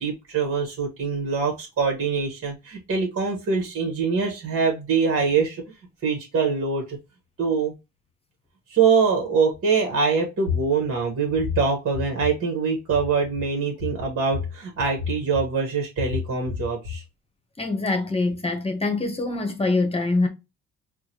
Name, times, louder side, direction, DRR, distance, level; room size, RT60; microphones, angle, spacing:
voice 1, 0.0-5.6 6.0-7.0 7.4-7.7 8.7-17.0, right 4 dB, 50° right, 1.3 m, -24 dB
voice 2, 17.6-20.3, left 3 dB, 20° left, 1.0 m, -24 dB
4.6 x 2.1 x 2.9 m
cardioid pair, 90°, 30 cm